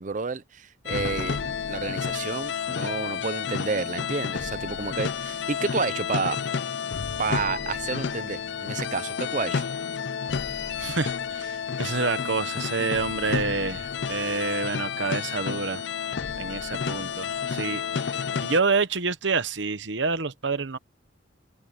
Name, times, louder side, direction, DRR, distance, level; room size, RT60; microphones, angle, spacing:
voice 1, 0.0-6.4 6.8-9.7, right 4 dB, 40° right, 0.5 m, -30 dB
sound 1, 0.9-18.6, left 6 dB, 60° left, 0.5 m, -30 dB
voice 2, 10.8-15.8 16.4-17.8 18.1-20.8, right 4 dB, 70° right, 1.0 m, -28 dB
head